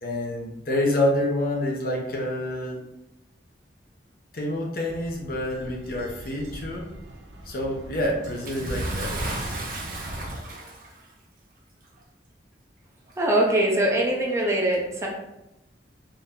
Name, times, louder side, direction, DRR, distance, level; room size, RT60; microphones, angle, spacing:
voice 1, 0.0-2.8 4.3-6.9 7.4-9.4, left 1 dB, 55° left, -1 dB, 0.8 m, -27 dB
sound 1, 4.9-10.4, right 1 dB, 75° right, 0.5 m, -37 dB
Bathtub (filling or washing) / Splash splatter, 8.4-11.0 12.0-12.1 13.1-13.2, right 2 dB, 50° right, 0.8 m, -36 dB
voice 2, 13.2-15.1, right 1 dB, 15° right, -2 dB, 0.6 m, -22 dB
3.9 x 2.7 x 3.6 m, 0.91 s
head